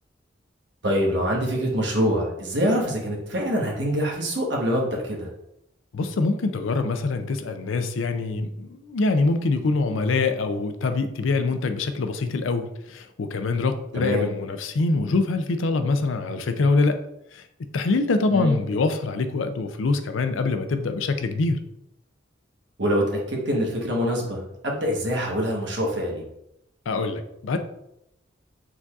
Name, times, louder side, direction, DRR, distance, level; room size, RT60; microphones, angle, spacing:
voice 1, 0.8-5.3 13.9-14.3 18.3-18.5 22.8-26.2, equal, 65° right, -2 dB, 1.2 m, -25 dB
voice 2, 5.9-17.0 17.3-17.4 17.7-21.6 26.9-27.6, left 3 dB, 80° left, 8 dB, 0.5 m, -24 dB
4.8 x 4.0 x 2.4 m, 0.81 s
head